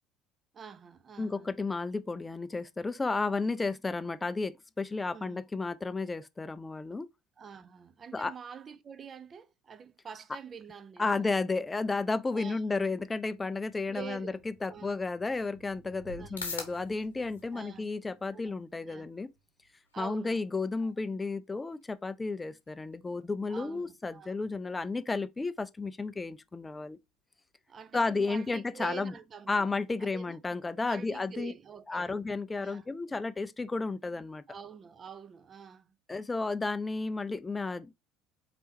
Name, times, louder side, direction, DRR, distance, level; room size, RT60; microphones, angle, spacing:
voice 1, 0.5-1.6 5.1-5.4 7.4-11.3 12.3-12.6 13.9-15.1 16.2-16.3 17.5-17.9 18.3-18.5 18.9-19.1 19.9-20.4 20.8-20.9 23.5-24.4 27.7-29.7 30.0-30.4 30.8-32.1 32.6-32.9 34.5-35.9, right 7 dB, 35° right, 0.5 m, -46 dB
voice 2, 1.2-7.1 8.1-8.3 11.0-19.3 20.0-27.0 27.9-29.1 29.5-31.5 31.9-34.4 36.1-37.9, left 3 dB, 20° left, 0.4 m, -32 dB
Thunder / Rain, 11.7-19.9, right 2 dB, 80° right, 2.0 m, -58 dB
sound 1, 15.8-31.9, left 4 dB, 90° left, 0.9 m, -52 dB
4.2 x 3.4 x 2.8 m
hypercardioid pair, 65°, 0 cm